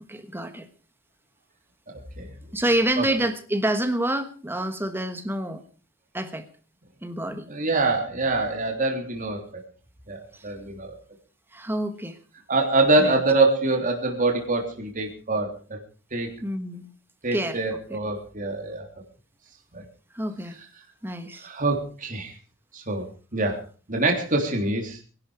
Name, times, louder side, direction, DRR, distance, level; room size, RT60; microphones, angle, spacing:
voice 1, 0.1-0.7 2.5-5.6 6.1-6.5 7.0-7.5 10.3-10.5 11.5-12.2 13.0-13.2 16.4-16.9 17.3-17.6 17.9-18.0 20.1-20.6 21.0-21.5, right 1 dB, 10° right, 9 dB, 1.3 m, -27 dB
voice 2, 1.9-2.3 3.0-3.1 7.5-9.4 10.1-10.9 12.5-15.8 16.1-16.3 17.2-18.8 19.7-19.8 21.4-22.3 22.7-23.0 23.3-23.6 23.9-25.0, right 2 dB, 40° right, 2 dB, 3.4 m, -25 dB
21.5 x 11.5 x 5.0 m, 0.40 s
head